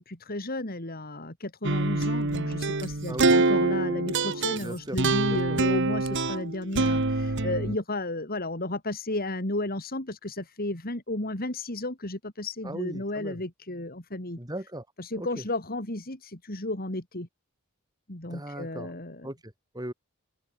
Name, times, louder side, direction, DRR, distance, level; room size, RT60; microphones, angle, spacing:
voice 1, 0.0-14.4 15.0-17.3 18.1-19.3, left 2 dB, 45° left, 3.5 m, -33 dB
sound 1, 1.6-7.8, right 2 dB, 55° right, 1.8 m, -25 dB
voice 2, 4.5-5.0 5.3-5.6 12.6-13.4 14.4-14.9 15.2-15.4 18.3-18.9 19.2-19.9, right 1 dB, 20° right, 5.1 m, -38 dB
open air
head